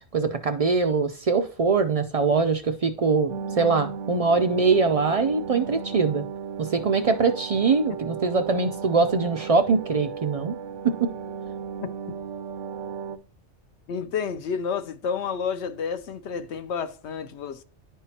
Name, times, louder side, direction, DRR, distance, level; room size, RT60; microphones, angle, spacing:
voice 1, 0.1-6.3 6.6-10.6 10.8-11.1, right 4 dB, 60° right, 0.3 m, -23 dB
sound 1, 3.3-13.2, right 7 dB, 90° right, 1.1 m, -35 dB
voice 2, 13.9-17.6, left 6 dB, 70° left, 0.9 m, -30 dB
11.0 x 3.6 x 2.8 m
omnidirectional pair, 1.2 m